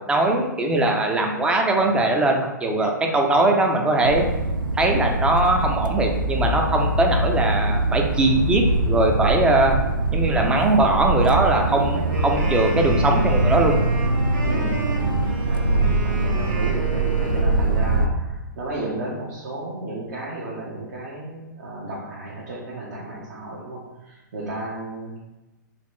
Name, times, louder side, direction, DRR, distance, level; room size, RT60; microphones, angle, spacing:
voice 1, 0.0-4.2 4.8-9.8 10.1-13.8, right 2 dB, 10° right, 2 dB, 0.5 m, -20 dB
sound 1, 4.0-18.1, right 2 dB, 90° right, 0.4 m, -23 dB
Wind instrument woodwind instrument, 11.9-17.8, right 2 dB, 35° right, 1.2 m, -33 dB
voice 2, 14.4-25.2, right 2 dB, 60° right, -5 dB, 1.0 m, -33 dB
4.1 x 2.9 x 3.2 m, 1.1 s
figure-of-eight pair, 115°, 11 cm